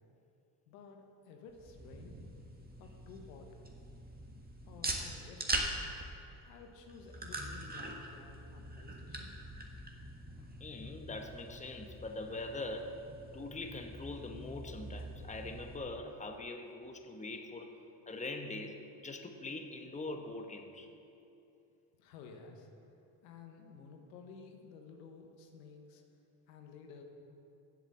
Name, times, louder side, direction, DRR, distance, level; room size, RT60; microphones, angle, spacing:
voice 1, 0.7-2.4 2.8-3.5 4.7-5.8 6.5-9.3 10.4-10.5 22.0-22.7 23.2-26.0 26.5-27.0, left 5 dB, 85° left, 3 dB, 1.1 m, -53 dB
sound 1, 1.5-15.8, right 1 dB, 20° right, 1.6 m, -43 dB
voice 2, 10.6-12.9 13.3-17.7 18.1-20.9, left 2 dB, 15° left, 4 dB, 1.1 m, -43 dB
8.2 x 7.3 x 7.4 m, 2.8 s
hypercardioid pair, 60°, 48 cm